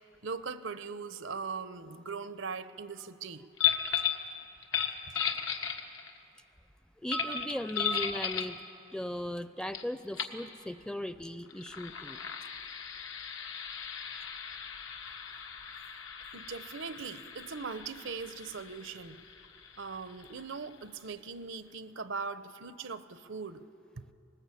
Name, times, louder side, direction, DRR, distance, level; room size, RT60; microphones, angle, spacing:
voice 1, 0.2-3.5 16.3-19.2 19.8-23.6, right 5 dB, 85° right, 12 dB, 0.8 m, -40 dB
sound 1, 3.6-4.2 4.6-6.2 7.1-8.6 9.7-9.8 10.1-10.4 11.5-20.7, left 8 dB, 90° left, 1.5 m, -36 dB
voice 2, 7.0-8.6 8.9-12.2, left 1 dB, 5° left, 12 dB, 0.4 m, -37 dB
20.0 x 20.0 x 8.4 m, 2.6 s
head